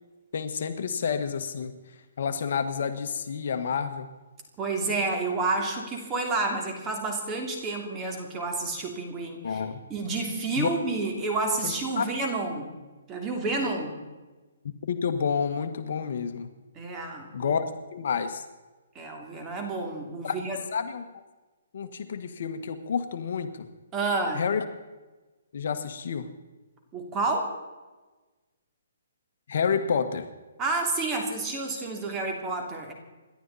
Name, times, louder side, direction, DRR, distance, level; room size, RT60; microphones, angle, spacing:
voice 1, 0.3-1.7 2.2-4.1 9.4-9.8 10.6-10.7 11.6-12.1 14.9-16.5 17.3-17.6 17.9-18.4 20.2-20.4 20.7-21.1 21.7-23.5 24.3-24.6 25.5-26.3 29.5-30.3, left 6 dB, 55° left, 8 dB, 1.5 m, -29 dB
voice 2, 4.6-9.6 9.9-12.7 13.1-13.9 16.7-17.6 18.9-20.6 23.9-24.4 26.9-27.5 30.6-32.9, right 3 dB, 15° right, 2 dB, 3.0 m, -30 dB
28.5 x 12.0 x 4.2 m, 1.2 s
hypercardioid pair, 160°, 0 cm